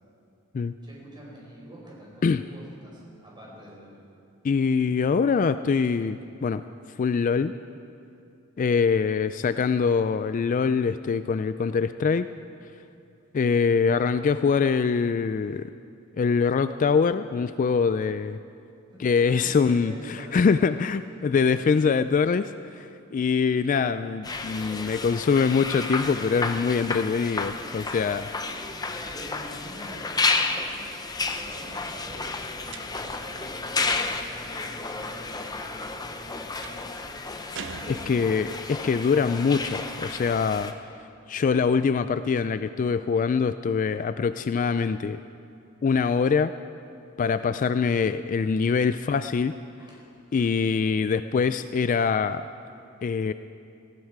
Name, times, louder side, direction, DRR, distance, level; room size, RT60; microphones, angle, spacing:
voice 1, 0.8-4.0 5.8-6.0 18.9-20.5 20.8-21.3 26.0-26.2 28.2-30.9 31.3-37.1 37.6-38.3 42.3-42.4 47.3-47.4 49.0-49.2 49.7-50.6, equal, 20° right, -4 dB, 4.5 m, -46 dB
voice 2, 4.4-6.6 7.0-7.5 8.6-12.3 13.3-15.7 16.2-18.4 19.0-28.3 37.9-40.7 41.3-45.2 45.8-46.5 47.2-49.5 50.3-52.5 53.0-53.3, left 5 dB, 35° left, 12 dB, 0.3 m, -24 dB
sound 1, 24.2-40.7, left 3 dB, 20° left, 0.7 m, -32 dB
sound 2, 32.7-33.3 36.6-36.9 37.5-38.6, right 5 dB, 60° right, 0.7 m, -41 dB
19.0 x 15.5 x 4.7 m, 2.5 s
head